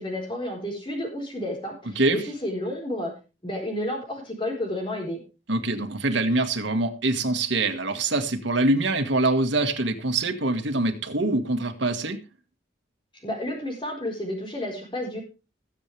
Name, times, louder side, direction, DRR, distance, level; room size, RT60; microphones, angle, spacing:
voice 1, 0.0-3.1 3.4-5.2 13.2-15.2, left 1 dB, 25° left, 1 dB, 4.2 m, -31 dB
voice 2, 5.5-12.2, right 2 dB, 80° right, 6 dB, 1.8 m, -24 dB
21.0 x 7.5 x 3.3 m, 0.30 s
head